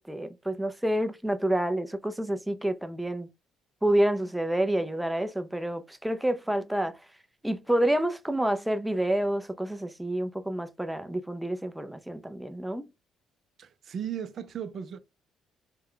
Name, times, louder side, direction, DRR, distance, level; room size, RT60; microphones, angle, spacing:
voice 1, 0.1-3.3 3.8-7.0 7.4-12.9, right 1 dB, 5° right, 0.5 m, -28 dB
voice 2, 13.6-15.0, right 8 dB, 55° right, 0.6 m, -36 dB
3.3 x 2.2 x 3.7 m
cardioid pair, 90°, 0 cm